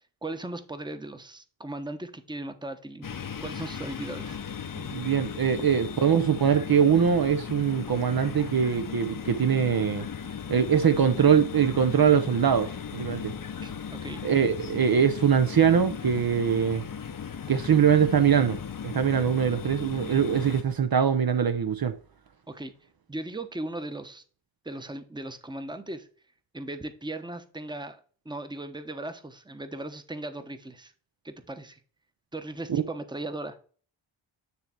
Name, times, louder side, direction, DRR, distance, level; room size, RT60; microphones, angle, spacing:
voice 1, 0.2-3.1 3.4-4.4 13.6-14.2 22.5-22.7 23.1-24.2 24.6-26.1 26.5-28.0 28.2-30.9 31.2-31.8 32.3-33.6, right 2 dB, 10° right, 1.0 m, -37 dB
sound 1, 3.0-20.6, left 7 dB, 45° left, 0.8 m, -37 dB
voice 2, 4.9-10.0 10.5-13.3 14.2-16.8 17.5-18.6 18.8-21.9 32.7-32.8, right 7 dB, 50° right, 0.8 m, -22 dB
9.6 x 3.3 x 4.4 m
cardioid pair, 50°, 48 cm